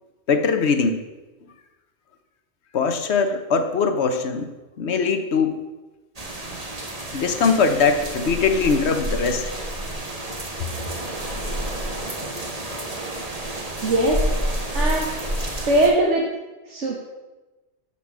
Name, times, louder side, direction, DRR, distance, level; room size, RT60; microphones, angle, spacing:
voice 1, 0.3-1.0 2.7-4.5 4.8-5.6 7.1-9.4, left 5 dB, 60° left, 7 dB, 1.3 m, -21 dB
sound 1, 6.2-15.9, right 1 dB, 30° right, 1.6 m, -29 dB
voice 2, 13.8-14.3 14.7-15.1 15.7-16.3 16.7-17.0, right 1 dB, 70° right, -2 dB, 1.8 m, -20 dB
13.0 x 5.9 x 6.1 m, 1.1 s
omnidirectional pair, 1.3 m